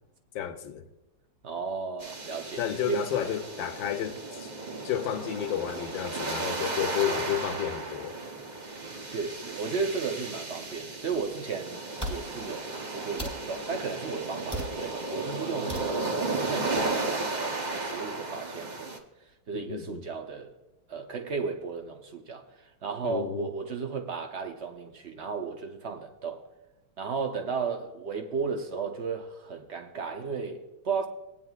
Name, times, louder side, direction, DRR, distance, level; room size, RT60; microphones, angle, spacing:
voice 1, 0.3-0.8 2.6-4.5 4.8-8.2 19.5-20.0 23.0-23.5, left 10 dB, 70° left, 1.4 m, -31 dB
voice 2, 1.4-3.1 9.1-18.9 19.5-20.5 20.9-26.4 27.0-31.1, right 5 dB, 50° right, 0.8 m, -34 dB
sound 1, 2.0-19.0, right 3 dB, 70° right, 0.4 m, -34 dB
sound 2, 11.1-11.2 12.0-12.2 13.2-13.4 14.5-14.8 15.7-15.9 16.8-16.9, equal, 10° right, 1.6 m, -35 dB
21.0 x 9.1 x 2.4 m
omnidirectional pair, 2.3 m